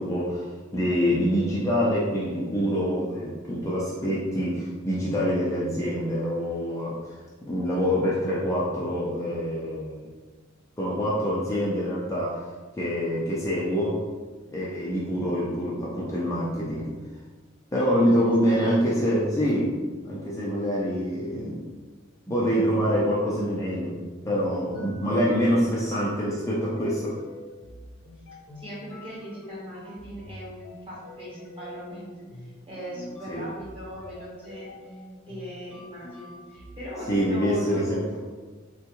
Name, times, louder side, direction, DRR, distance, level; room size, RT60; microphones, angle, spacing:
voice 1, 0.0-7.2 7.4-10.0 10.8-12.5 12.8-14.0 14.5-16.9 17.7-21.7 22.3-24.0 24.3-27.2 33.3-33.4 37.1-38.0, equal, 15° left, -6 dB, 0.4 m, -25 dB
voice 2, 17.8-18.8 28.5-34.9 35.3-37.8, equal, 25° right, -6 dB, 1.1 m, -40 dB
sound 1, 24.1-37.8, left 1 dB, 80° left, 0.7 m, -46 dB
3.7 x 2.3 x 2.9 m, 1.3 s
head